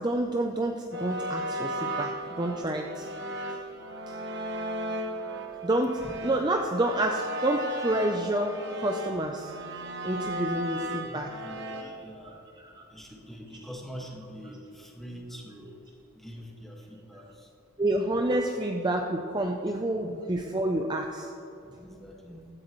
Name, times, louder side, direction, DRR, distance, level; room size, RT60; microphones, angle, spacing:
voice 1, 0.0-3.1 4.1-4.2 5.6-9.5 10.0-11.3 11.8-11.9 12.3-12.9 17.8-21.3, right 1 dB, 20° right, 3 dB, 0.5 m, -29 dB
sound 1, 0.9-11.8, equal, 50° right, 1.2 m, -35 dB
voice 2, 11.1-12.3 12.9-15.7 16.2-17.5 19.7-19.8 21.6-22.4, equal, ahead, -2 dB, 1.7 m, -44 dB
15.5 x 13.0 x 3.1 m, 2.9 s
head